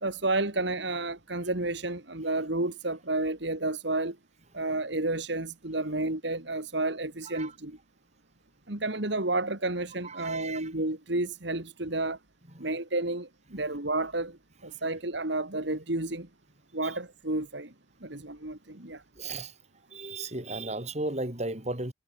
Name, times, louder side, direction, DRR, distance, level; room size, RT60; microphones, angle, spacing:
voice 1, 0.0-4.2 4.5-7.8 8.7-12.2 12.6-16.3 16.7-17.7 18.0-19.0, right 2 dB, 60° right, 2.5 m, -31 dB
voice 2, 10.0-10.7 12.5-12.7 16.8-17.0 19.2-19.5 19.9-21.9, right 2 dB, 35° right, 4.3 m, -35 dB
head